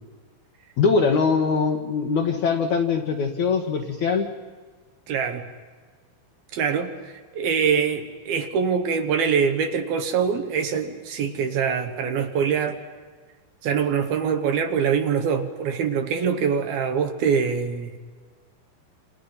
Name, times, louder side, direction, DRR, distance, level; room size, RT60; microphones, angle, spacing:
voice 1, 0.8-4.3, left 5 dB, 60° left, 1 dB, 2.0 m, -22 dB
voice 2, 5.1-5.4 6.5-12.8 13.6-18.0, right 6 dB, 65° right, 7 dB, 2.9 m, -24 dB
29.0 x 28.0 x 5.7 m, 1.5 s
omnidirectional pair, 5.2 m